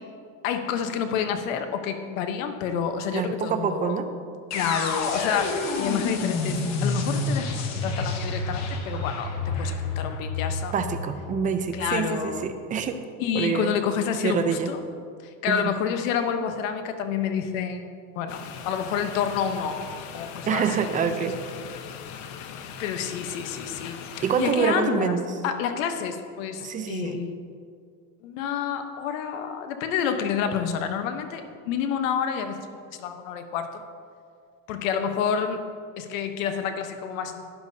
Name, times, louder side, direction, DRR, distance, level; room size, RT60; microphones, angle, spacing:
voice 1, 0.4-4.0 4.5-10.7 11.7-12.4 13.2-14.8 15.2-18.4 18.7-19.8 20.1-21.3 22.8-24.0 24.4-25.2 25.4-27.3 28.2-33.8 34.7-35.6 36.0-37.5, left 7 dB, 90° left, 7 dB, 1.0 m, -29 dB
voice 2, 3.1-4.1 10.7-13.0 13.3-13.7 14.2-14.7 15.5-15.7 20.5-21.4 24.2-25.3 26.6-27.2, right 6 dB, 20° right, 8 dB, 0.5 m, -26 dB
sound 1, 4.5-12.5, left 3 dB, 45° left, 1.1 m, -29 dB
Applause, 5.1-10.2, equal, ahead, 1.0 m, -46 dB
sound 2, 18.3-24.5, left 7 dB, 65° left, 0.9 m, -40 dB
12.0 x 10.5 x 2.7 m, 2.2 s
supercardioid pair, 140°, 38 cm